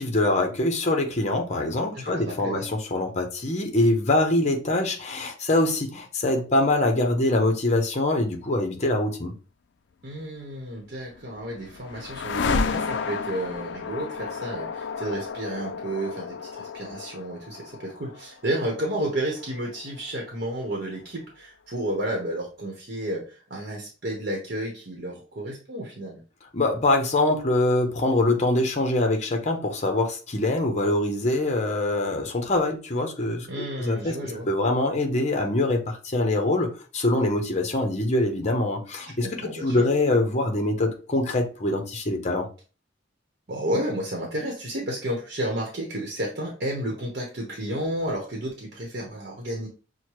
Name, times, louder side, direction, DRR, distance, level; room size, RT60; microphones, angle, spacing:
voice 1, 0.0-9.3 26.5-42.5, left 2 dB, 35° left, 0.8 m, -24 dB
voice 2, 1.9-2.7 10.0-26.2 33.5-34.5 39.2-39.8 43.5-49.7, right 1 dB, 50° right, 1.0 m, -31 dB
sound 1, 10.9-21.0, left 4 dB, 65° left, 0.4 m, -33 dB
6.2 x 2.2 x 3.0 m
head